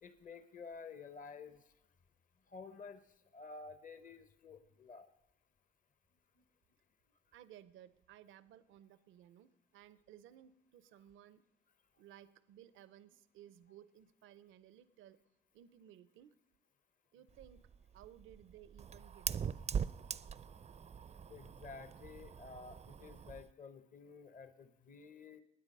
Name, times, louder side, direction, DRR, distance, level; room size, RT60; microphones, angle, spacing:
voice 1, 0.0-1.7 2.5-5.1 21.3-25.4, left 4 dB, 40° left, 11 dB, 0.9 m, -52 dB
voice 2, 7.3-11.4 12.0-15.2 15.5-16.4 17.1-17.6 17.9-19.6, right 11 dB, 85° right, 16 dB, 0.6 m, -59 dB
Fire, 17.3-23.5, right 7 dB, 35° right, 0.4 m, -42 dB
20.0 x 9.2 x 5.3 m, 0.95 s
cardioid pair, 90°, 20 cm